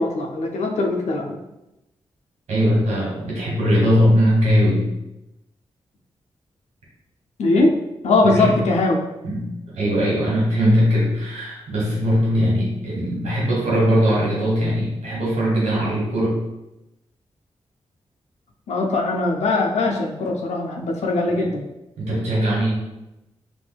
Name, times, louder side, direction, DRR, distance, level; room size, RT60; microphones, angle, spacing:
voice 1, 0.0-1.4 7.4-9.0 18.7-21.7, left 2 dB, 75° left, 1 dB, 0.5 m, -21 dB
voice 2, 2.5-4.9 8.2-8.5 9.2-16.4 21.4-21.5 22.0-22.8, equal, 85° right, -5 dB, 1.4 m, -20 dB
4.2 x 2.5 x 2.3 m, 0.92 s
supercardioid pair, 45°, 11 cm